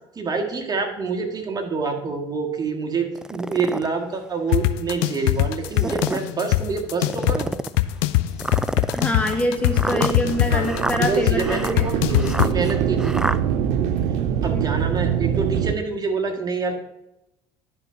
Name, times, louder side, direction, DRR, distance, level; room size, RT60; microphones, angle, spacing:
voice 1, 0.2-7.5 9.9-10.0 10.5-10.7 11.0-13.2 14.4-16.8, right 4 dB, 30° right, 2 dB, 1.8 m, -26 dB
sound 1, 3.2-3.9 4.5-4.6 5.6-6.3 7.0-7.8 8.4-13.4, right 1 dB, 5° right, 0.3 m, -28 dB
sound 2, 4.5-12.5, left 17 dB, 85° left, 0.4 m, -22 dB
voice 2, 8.9-11.9 14.5-14.6, equal, 10° left, 4 dB, 0.8 m, -25 dB
sound 3, 9.6-15.7, right 9 dB, 70° right, 0.7 m, -24 dB
11.0 x 3.9 x 5.8 m, 0.89 s
supercardioid pair, 85°, 12 cm